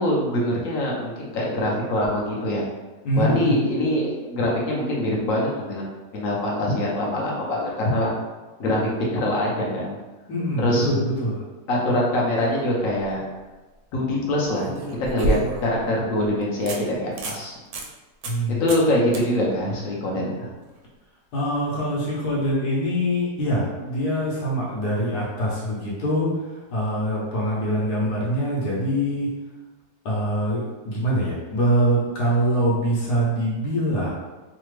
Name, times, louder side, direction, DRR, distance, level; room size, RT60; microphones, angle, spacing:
voice 1, 0.0-2.6 3.2-5.9 6.1-8.1 8.6-10.0 10.6-10.9 11.7-13.2 13.9-14.7 15.0-17.5 18.6-20.5, left 1 dB, 65° left, -4 dB, 1.1 m, -24 dB
voice 2, 3.0-3.6 10.3-11.4 18.3-18.6 21.3-29.3 30.0-34.1, equal, 85° left, -6 dB, 1.3 m, -24 dB
sound 1, 12.8-13.1 14.5-15.8 16.2-16.3 16.7-16.8 17.1-17.4 17.7-17.9 18.2-18.4 18.7-18.9 19.1-19.2 22.3-22.4, right 1 dB, 75° right, 1.0 m, -29 dB
3.3 x 2.1 x 3.1 m, 1.2 s
omnidirectional pair, 1.7 m